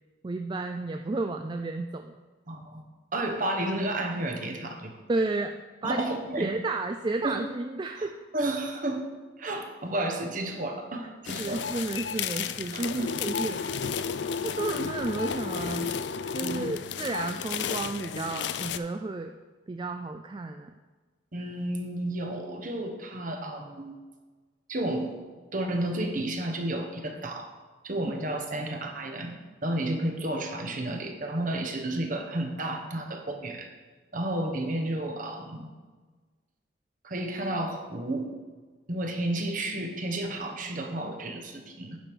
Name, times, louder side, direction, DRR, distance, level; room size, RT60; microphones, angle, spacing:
voice 1, 0.2-2.1 5.1-6.0 6.4-8.2 11.4-13.6 14.4-15.9 16.3-19.3 19.7-20.7, right 2 dB, 25° right, 6 dB, 0.3 m, -32 dB
voice 2, 2.5-2.8 3.1-4.9 5.8-6.5 7.2-7.4 8.0-9.1 9.4-11.7 12.7-13.1 13.8-13.9 16.4-16.7 21.3-24.0 24.7-25.1 25.5-27.5 27.8-33.7 34.1-35.7 37.0-38.3 38.9-42.0, right 1 dB, 45° right, 4 dB, 1.1 m, -32 dB
sound 1, 11.3-18.8, left 6 dB, 65° left, 0.4 m, -32 dB
9.4 x 5.3 x 6.1 m, 1.4 s
head